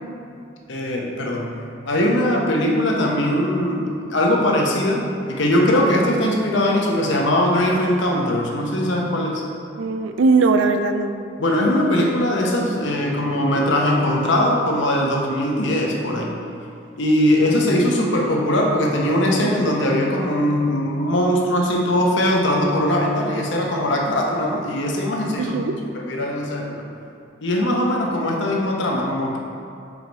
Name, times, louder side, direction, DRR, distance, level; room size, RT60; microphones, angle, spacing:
voice 1, 0.7-1.5 1.8-5.0 5.3-9.4 11.4-16.3 17.0-26.8 27.4-29.4, left 1 dB, 65° left, -1 dB, 0.8 m, -20 dB
voice 2, 9.8-11.1 19.4-19.7 25.4-25.7, right 3 dB, 70° right, 7 dB, 0.4 m, -20 dB
4.9 x 4.8 x 4.0 m, 2.6 s
head